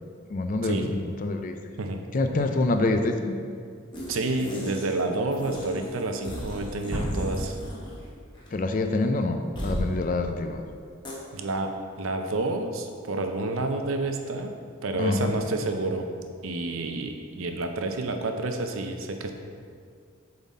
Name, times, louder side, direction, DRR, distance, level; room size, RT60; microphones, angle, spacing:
voice 1, 0.3-1.7 2.1-3.4 8.5-10.6 15.0-15.3, left 2 dB, 40° left, 6 dB, 0.4 m, -26 dB
sound 1, 3.9-5.0 5.3-8.1 8.3-8.5 9.5-9.9 11.0-11.1, equal, 20° left, 1.1 m, -36 dB
voice 2, 4.1-7.6 11.3-11.7 12.0-14.5 14.8-16.1 16.4-19.3, right 2 dB, 80° right, 5 dB, 0.6 m, -29 dB
sound 2, 6.9-9.0, equal, 10° right, 1.1 m, -33 dB
7.1 x 3.9 x 4.2 m, 2.2 s
head